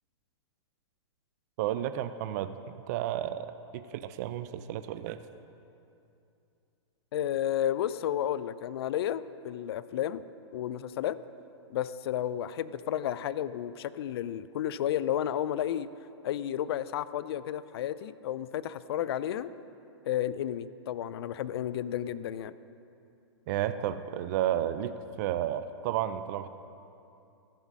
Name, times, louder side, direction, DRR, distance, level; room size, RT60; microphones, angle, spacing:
voice 1, 1.6-2.5 2.9-3.5 3.7-5.2 23.5-24.9 25.2-26.5, right 11 dB, 40° right, 11 dB, 0.3 m, -31 dB
voice 2, 7.1-10.2 10.5-11.2 11.7-15.9 16.2-19.5 20.1-22.5, left 11 dB, 60° left, 16 dB, 0.4 m, -32 dB
13.5 x 5.3 x 6.1 m, 2.7 s
hypercardioid pair, 150°, 14 cm